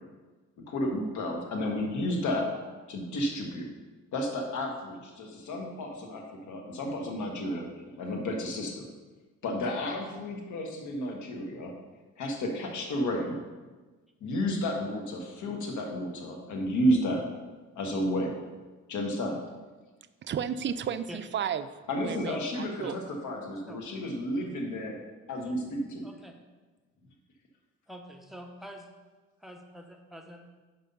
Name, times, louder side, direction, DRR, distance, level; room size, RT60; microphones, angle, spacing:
voice 1, 0.7-2.5 2.9-3.7 4.1-7.6 8.0-8.9 9.4-11.7 12.2-13.4 14.2-17.2 17.7-18.4 18.9-19.4 21.9-24.9 25.3-26.1, equal, 75° left, 1 dB, 1.4 m, -31 dB
voice 2, 20.2-21.7 22.0-23.0, right 8 dB, 40° right, 11 dB, 0.4 m, -33 dB
voice 3, 26.0-26.4 27.9-28.9 29.4-30.6, equal, ahead, 3 dB, 0.9 m, -45 dB
5.5 x 5.4 x 5.4 m, 1.3 s
cardioid pair, 90°, 30 cm